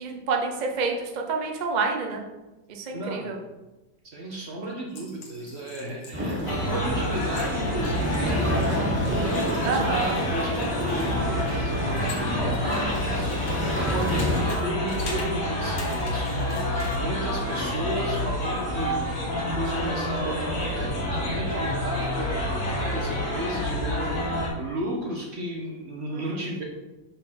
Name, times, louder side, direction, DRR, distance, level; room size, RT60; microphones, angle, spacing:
voice 1, 0.0-2.2 2.7-3.4 9.6-10.2, right 4 dB, 65° right, 2 dB, 0.4 m, -28 dB
voice 2, 2.9-3.3 4.1-9.8 10.2-26.6, right 1 dB, 45° right, 0 dB, 0.9 m, -34 dB
sound 1, 4.9-10.3 10.6-14.6 14.9-15.3 15.7-17.0, left 3 dB, 85° left, 2.2 m, -43 dB
sound 2, 6.1-14.4, equal, 10° right, 0.5 m, -29 dB
sound 3, 6.4-24.5, left 1 dB, 55° left, 1.9 m, -28 dB
5.4 x 3.8 x 6.0 m, 1.1 s
omnidirectional pair, 2.1 m